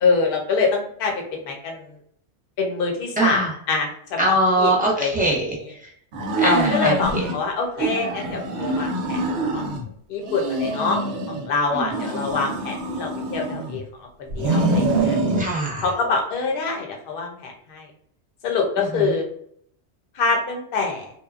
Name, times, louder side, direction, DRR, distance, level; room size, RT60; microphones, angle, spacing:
voice 1, 0.0-1.9 2.6-4.7 5.0-5.1 6.4-9.2 9.5-11.0 11.3-15.2 15.8-17.9 18.4-19.3 20.2-21.1, left 4 dB, 55° left, 1 dB, 0.8 m, -25 dB
voice 2, 3.2-3.5 4.2-5.9 6.4-7.2 11.7-12.0 15.4-15.8 18.8-19.2, right 1 dB, 10° right, -5 dB, 0.6 m, -23 dB
sound 1, 6.1-7.4 7.8-9.8 10.2-11.5 11.9-13.8 14.3-15.5, right 2 dB, 80° right, 0.9 m, -25 dB
2.9 x 2.2 x 2.3 m, 0.66 s
omnidirectional pair, 1.2 m